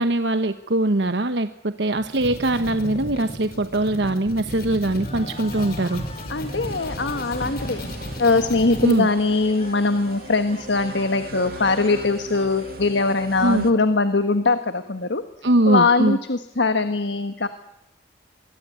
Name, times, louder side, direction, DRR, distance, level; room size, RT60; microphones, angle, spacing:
voice 1, 0.0-6.0 8.8-9.1 13.4-13.7 15.4-16.2, right 1 dB, 75° right, 9 dB, 1.1 m, -22 dB
sound 1, 1.9-9.0, equal, 55° left, 5.6 m, -34 dB
sound 2, 5.0-13.7, left 3 dB, 35° left, 2.5 m, -45 dB
sound 3, 6.1-13.7, right 2 dB, 55° right, 2.1 m, -39 dB
voice 2, 6.3-7.8 8.2-15.2 15.7-17.5, left 3 dB, 80° left, 9 dB, 1.4 m, -21 dB
25.0 x 22.5 x 9.4 m, 0.85 s
head